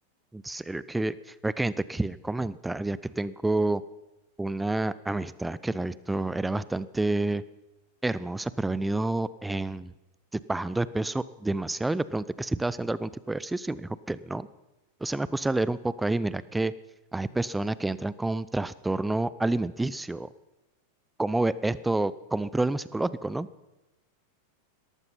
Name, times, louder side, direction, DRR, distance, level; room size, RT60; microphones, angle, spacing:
voice 1, 0.3-3.8 4.4-7.4 8.0-9.9 10.5-14.5 15.0-16.7 17.1-20.3 21.2-23.5, right 2 dB, 5° right, 18 dB, 0.6 m, -29 dB
18.0 x 14.0 x 5.5 m, 0.99 s
figure-of-eight pair, 90°, 0 cm